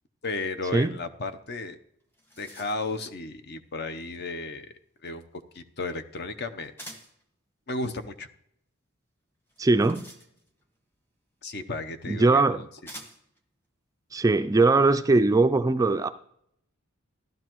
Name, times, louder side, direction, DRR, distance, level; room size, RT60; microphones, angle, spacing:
voice 1, 0.2-1.8 2.4-4.7 5.0-5.2 5.5-6.7 7.7-8.3 11.4-12.4, left 3 dB, 50° left, 10 dB, 0.8 m, -34 dB
sound 1, 1.6-1.7 2.0-3.0 6.8-7.2 9.5-10.7 11.8-11.9 12.9-13.4, equal, 10° left, 1.1 m, -47 dB
voice 2, 9.6-10.1 12.1-12.6 14.1-16.1, right 3 dB, 15° right, 10 dB, 0.3 m, -21 dB
14.5 x 12.0 x 3.0 m, 0.72 s
head